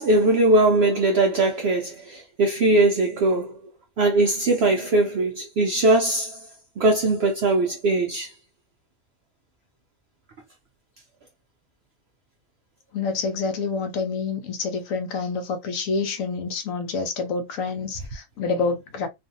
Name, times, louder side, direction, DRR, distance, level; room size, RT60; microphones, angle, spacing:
voice 1, 0.0-3.6 4.0-6.4 6.8-8.3, right 2 dB, 70° right, 0.6 m, -20 dB
voice 2, 12.9-19.1, left 4 dB, 70° left, 0.9 m, -27 dB
2.5 x 2.4 x 2.6 m
omnidirectional pair, 1.6 m